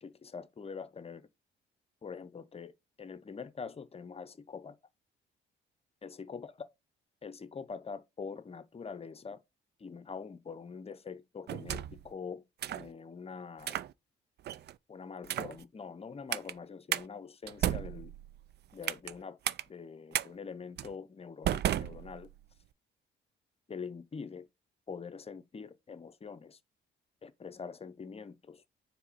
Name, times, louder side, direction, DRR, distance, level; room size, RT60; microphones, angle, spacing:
voice 1, 0.0-1.3 2.0-2.7 3.0-4.8 6.0-6.5 7.2-9.4 9.8-12.4 12.7-13.8 14.9-18.1 18.7-19.4 19.7-22.3 23.7-24.5 24.9-26.6 27.2-28.6, left 5 dB, 30° left, 0.7 m, -44 dB
sound 1, 11.5-12.1 12.6-12.9 13.6-13.9 14.4-14.7 15.2-15.6 16.3-16.5 16.9-17.0 17.5-19.1 19.4-19.6 20.1-20.3 20.8-20.9 21.4-22.5, right 11 dB, 60° right, 0.4 m, -34 dB
4.8 x 3.7 x 5.5 m
cardioid pair, 90°, 20 cm